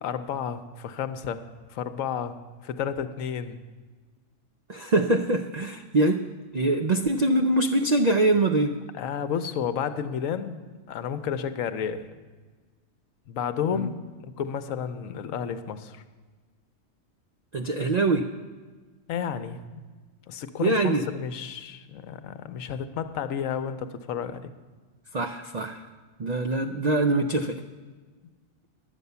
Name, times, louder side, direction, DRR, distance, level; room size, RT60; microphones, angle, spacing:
voice 1, 0.0-1.4 1.7-3.6 8.9-10.6 10.9-12.1 13.3-13.9 14.2-16.0 19.1-19.8 20.3-24.5, left 8 dB, 75° left, 10 dB, 1.0 m, -31 dB
voice 2, 4.7-6.2 6.5-8.7 13.7-13.9 17.5-18.3 20.6-21.0 25.1-25.8 26.2-27.6, right 2 dB, 70° right, 6 dB, 0.4 m, -23 dB
10.5 x 8.2 x 6.8 m, 1.4 s
omnidirectional pair, 1.4 m